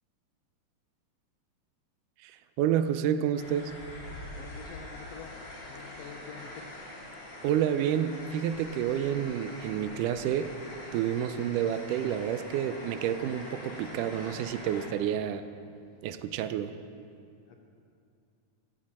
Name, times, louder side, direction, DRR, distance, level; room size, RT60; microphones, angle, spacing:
voice 1, 2.2-3.7 7.4-10.5 10.9-15.4 16.0-16.7, right 10 dB, 80° right, 11 dB, 2.1 m, -29 dB
sound 1, 3.3-14.9, left 1 dB, 35° left, 2.6 m, -44 dB
voice 2, 4.3-5.4 5.7-6.6 14.2-14.3 17.5-17.6, left 6 dB, 75° left, 3 dB, 1.6 m, -46 dB
16.5 x 16.0 x 4.2 m, 2.4 s
omnidirectional pair, 3.8 m